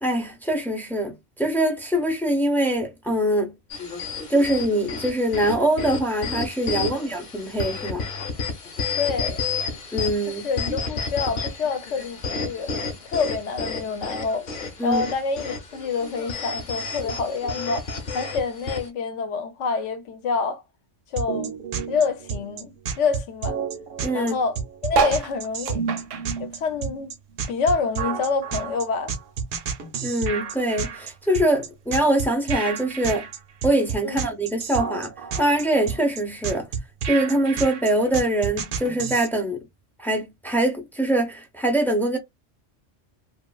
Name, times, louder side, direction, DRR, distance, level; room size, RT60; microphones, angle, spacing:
voice 1, 0.0-3.5 4.3-8.0 9.9-10.4 14.8-15.0 24.0-24.3 30.0-33.3 33.6-35.1 35.4-36.7 37.1-39.6 40.0-42.2, right 1 dB, 5° left, 0.4 m, -23 dB
sound 1, 3.7-18.9, left 4 dB, 50° left, 0.9 m, -31 dB
voice 2, 8.9-9.4 10.2-12.8 13.0-14.5 14.8-20.6 21.1-21.6 21.9-23.6 24.1-25.8 26.4-27.1 27.5-29.1 34.0-34.2, left 5 dB, 75° left, 1.0 m, -27 dB
sound 2, 21.2-39.3, right 6 dB, 55° right, 0.6 m, -30 dB
sound 3, 24.9-27.6 28.0-29.5 30.0-30.1 30.3-30.4 30.5-30.9 31.7-31.8, right 5 dB, 75° right, 1.0 m, -28 dB
2.9 x 2.4 x 2.3 m
omnidirectional pair, 1.3 m